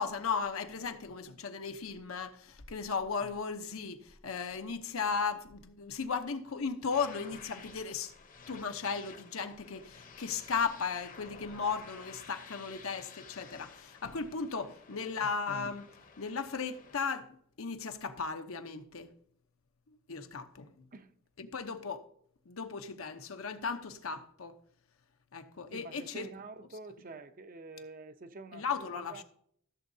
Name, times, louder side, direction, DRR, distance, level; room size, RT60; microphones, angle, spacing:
voice 1, 0.0-8.1 8.5-15.9 16.2-19.1 19.9-20.9 21.4-22.1 22.5-24.6 25.3-26.3 28.5-29.2, left 5 dB, 80° left, 0.8 m, -36 dB
sound 1, 6.9-17.0, left 5 dB, 40° left, 0.8 m, -53 dB
voice 2, 25.7-29.2, right 3 dB, 40° right, 0.6 m, -48 dB
14.5 x 7.2 x 2.7 m
head